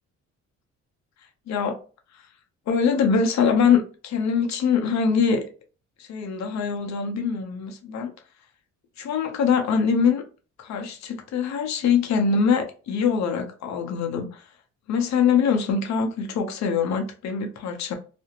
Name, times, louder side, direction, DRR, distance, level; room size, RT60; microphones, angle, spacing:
voice 1, 1.5-1.8 2.7-5.4 6.1-8.1 9.0-10.2 10.6-14.4 14.9-17.9, left 6 dB, 65° left, 0.7 m, -23 dB
2.5 x 2.1 x 2.8 m
cardioid pair, 90°, 30 cm